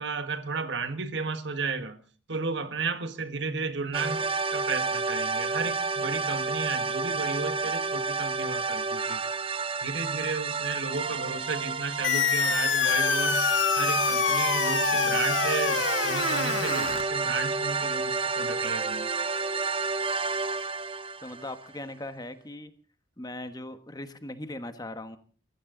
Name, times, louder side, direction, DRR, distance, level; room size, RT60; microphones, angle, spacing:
voice 1, 0.0-2.0 2.3-9.2 9.8-13.4 13.8-19.1, right 4 dB, 65° right, 1.6 m, -33 dB
sound 1, 3.9-21.8, right 4 dB, 30° right, 0.8 m, -30 dB
sound 2, 12.0-17.0, left 7 dB, 70° left, 1.5 m, -26 dB
voice 2, 21.2-22.7 23.2-25.2, left 1 dB, 20° left, 1.3 m, -39 dB
24.5 x 15.0 x 3.9 m
head